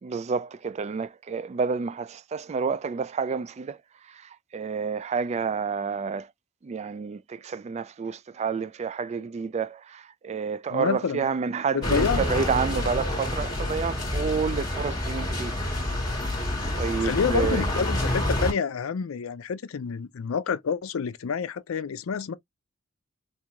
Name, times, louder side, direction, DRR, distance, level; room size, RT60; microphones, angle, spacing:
voice 1, 0.0-3.8 4.1-6.3 6.6-15.5 16.0-16.4 16.8-17.6, right 5 dB, 35° right, 0.3 m, -29 dB
voice 2, 10.7-11.3 11.7-12.3 17.0-22.4, left 6 dB, 85° left, 0.5 m, -28 dB
sound 1, 11.8-18.5, left 1 dB, 20° left, 1.6 m, -28 dB
4.5 x 2.6 x 2.3 m
head